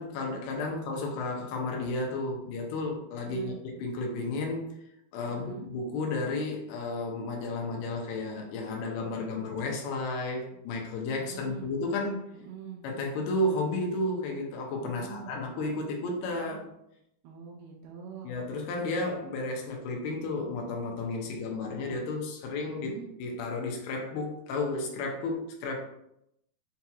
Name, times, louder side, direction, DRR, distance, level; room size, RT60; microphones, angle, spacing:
voice 1, 0.0-4.8 5.1-12.2 12.8-16.6 18.2-25.8, left 2 dB, 85° left, 1 dB, 2.7 m, -32 dB
voice 2, 3.2-3.6 5.2-5.6 11.2-11.7 12.3-12.8 14.8-15.4 16.3-16.6 17.2-18.3 22.7-23.1, right 6 dB, 90° right, -1 dB, 2.6 m, -44 dB
6.9 x 2.8 x 2.3 m, 0.80 s
omnidirectional pair, 4.4 m